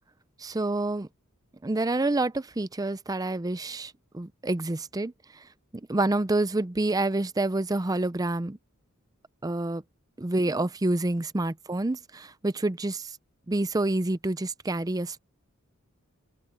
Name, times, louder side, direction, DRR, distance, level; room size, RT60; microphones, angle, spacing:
voice 1, 0.4-1.1 1.6-8.6 9.4-9.8 10.2-13.2 13.5-15.2, right 2 dB, 15° right, 0.5 m, -28 dB
open air
head